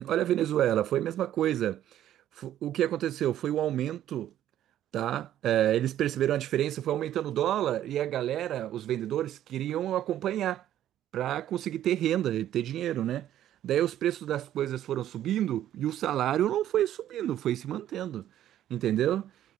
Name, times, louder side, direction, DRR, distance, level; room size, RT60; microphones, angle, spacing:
voice 1, 0.0-1.8 2.4-4.3 4.9-10.6 11.1-13.3 13.6-18.3 18.7-19.3, right 12 dB, 65° right, 1.9 m, -28 dB
cardioid pair, 150°, 0 cm